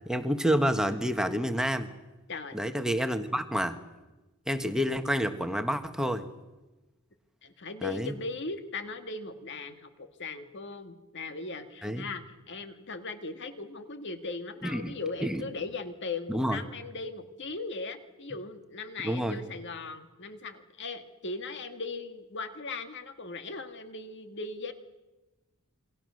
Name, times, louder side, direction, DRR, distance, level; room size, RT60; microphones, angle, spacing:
voice 1, 0.0-1.9 2.5-3.8 4.5-6.2 7.8-8.1 11.8-12.0 14.6-14.9 15.2-15.4 16.3-16.6 19.0-19.4, equal, 5° right, 7 dB, 1.3 m, -28 dB
voice 2, 7.4-24.7, left 3 dB, 55° left, 7 dB, 2.0 m, -38 dB
27.5 x 23.0 x 6.5 m, 1.1 s
head